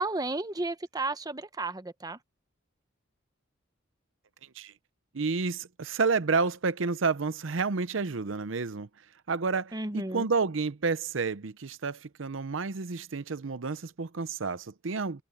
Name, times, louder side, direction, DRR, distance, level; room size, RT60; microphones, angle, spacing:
voice 1, 0.0-2.2 9.7-10.3, right 2 dB, 20° right, 0.9 m, -33 dB
voice 2, 5.1-8.9 9.3-15.2, right 4 dB, 75° right, 0.7 m, -30 dB
head